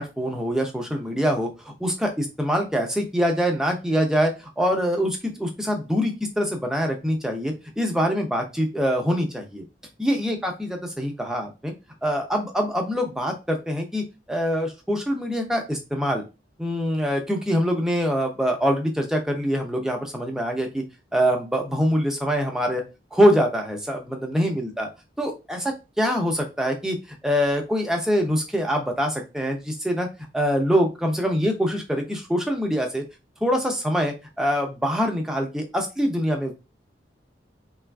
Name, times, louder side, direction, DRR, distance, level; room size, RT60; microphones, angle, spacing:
voice 1, 0.0-9.6 10.0-11.7 12.0-16.2 16.6-20.8 21.1-22.8 23.1-24.9 25.2-27.0 27.2-30.1 30.3-33.0 33.4-36.6, equal, 5° right, 2 dB, 0.5 m, -24 dB
3.2 x 2.3 x 2.2 m, 0.27 s
head